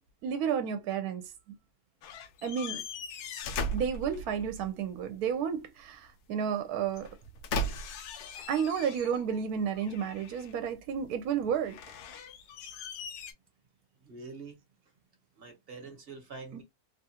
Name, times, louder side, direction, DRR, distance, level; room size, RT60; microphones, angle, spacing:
voice 1, 0.2-1.3 2.4-2.8 3.7-7.1 8.5-11.8 16.5-16.6, right 7 dB, 75° right, 1.0 m, -31 dB
sound 1, 2.0-4.7 6.9-9.4 9.8-10.6 11.6-13.3, left 1 dB, 90° left, 1.1 m, -38 dB
voice 2, 14.0-14.6 15.4-16.6, right 4 dB, 45° right, 1.0 m, -45 dB
2.9 x 2.4 x 2.7 m
omnidirectional pair, 1.6 m